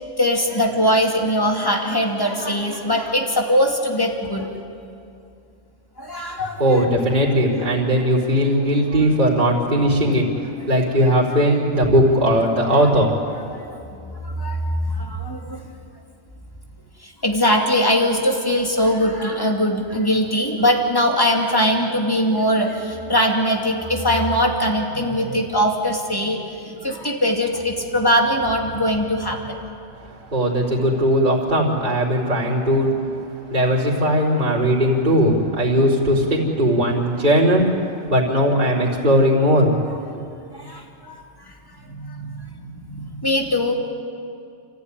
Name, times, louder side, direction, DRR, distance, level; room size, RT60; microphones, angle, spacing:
voice 1, 0.2-4.5 6.0-6.6 7.5-7.6 12.7-12.9 13.7-15.6 17.0-29.4 40.5-41.5 41.9-43.7, equal, 15° left, 1 dB, 2.6 m, -21 dB
voice 2, 6.6-13.4 30.3-32.9 33.5-39.7, equal, 40° right, -9 dB, 4.3 m, -18 dB
29.0 x 14.5 x 9.9 m, 2.5 s
omnidirectional pair, 1.3 m